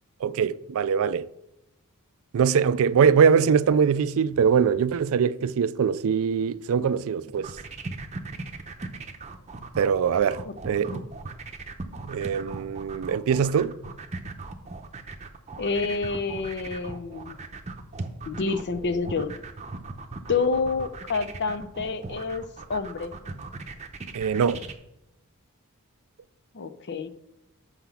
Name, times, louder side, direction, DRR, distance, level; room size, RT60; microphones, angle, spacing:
voice 1, 0.2-1.3 2.3-7.5 9.8-10.9 12.0-13.8 24.1-24.6, right 6 dB, 65° right, 0.4 m, -22 dB
sound 1, 7.3-24.7, right 3 dB, 30° right, 0.7 m, -38 dB
voice 2, 15.6-17.4 18.3-19.3 20.3-23.1 26.5-27.1, left 4 dB, 50° left, 0.6 m, -28 dB
5.9 x 5.7 x 7.0 m
head